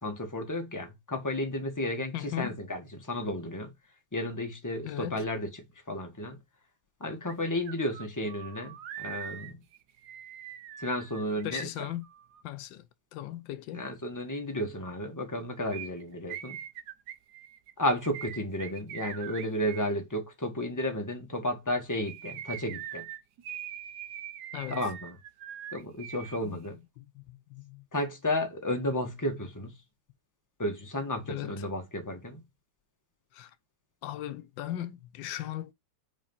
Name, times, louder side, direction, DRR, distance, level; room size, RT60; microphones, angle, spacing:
voice 1, 0.0-3.7 4.1-5.5 5.9-6.4 7.0-9.5 10.8-11.7 13.7-16.6 17.8-23.0 24.7-25.2 25.7-26.7 27.9-29.7 30.6-32.4, left 1 dB, 10° left, 1.4 m, -32 dB
voice 2, 2.1-2.6 4.8-5.2 11.4-12.1 12.4-12.9 13.1-13.9 24.5-24.8 26.4-26.6 27.0-27.8 31.3-31.6 33.3-33.5 34.0-35.7, left 13 dB, 85° left, 1.4 m, -38 dB
sound 1, 7.3-7.4 7.7-12.4 15.7-19.9 21.8-26.4 26.6-26.7, right 10 dB, 70° right, 1.3 m, -42 dB
5.1 x 5.1 x 5.5 m
omnidirectional pair, 2.0 m